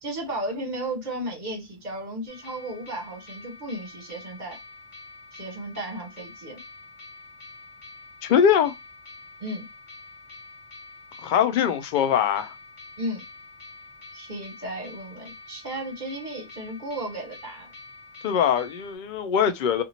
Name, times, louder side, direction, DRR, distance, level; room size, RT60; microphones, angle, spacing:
voice 1, 0.0-4.6 5.3-6.6 9.4-9.6 13.0-13.2 14.1-17.7, right 1 dB, 45° right, 1.1 m, -34 dB
sound 1, 2.3-19.0, left 3 dB, 30° left, 0.9 m, -46 dB
voice 2, 8.2-8.7 11.2-12.5 18.2-19.8, left 8 dB, 60° left, 0.6 m, -22 dB
2.7 x 2.5 x 2.7 m
omnidirectional pair, 1.1 m